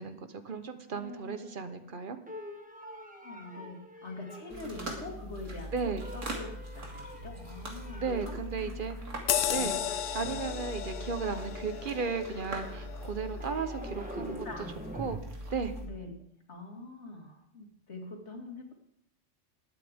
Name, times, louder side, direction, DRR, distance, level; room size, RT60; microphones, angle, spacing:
voice 1, 0.0-2.2 5.7-6.1 8.0-8.9 9.5-9.8 10.1-14.5 15.0-15.2 15.5-15.7, right 5 dB, 45° right, 9 dB, 1.1 m, -35 dB
sound 1, 0.9-2.0 2.3-5.6 6.0-9.5 9.7-15.2, equal, 5° right, 1.2 m, -46 dB
voice 2, 3.2-8.4 9.5-9.8 14.2-14.7 15.8-16.1 16.5-18.7, left 2 dB, 65° left, 1 dB, 2.5 m, -44 dB
sound 2, 4.5-15.9, equal, 90° right, 2.5 m, -42 dB
sound 3, 9.3-14.2 14.7-14.9, left 10 dB, 90° left, 1.0 m, -35 dB
19.5 x 8.7 x 3.6 m, 0.69 s
omnidirectional pair, 1.3 m